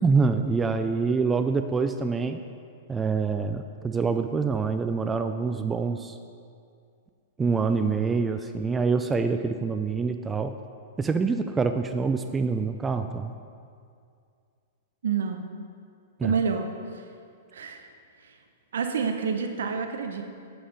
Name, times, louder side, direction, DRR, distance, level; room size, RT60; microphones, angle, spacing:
voice 1, 0.0-2.4 2.9-6.2 7.4-10.5 11.0-13.3 16.2-16.4, right 4 dB, 15° right, 8 dB, 0.4 m, -26 dB
voice 2, 15.0-15.4 16.2-16.7 17.5-17.8 18.7-20.2, right 6 dB, 75° right, 6 dB, 0.9 m, -27 dB
8.6 x 7.4 x 5.0 m, 2.3 s
hypercardioid pair, 110°, 0 cm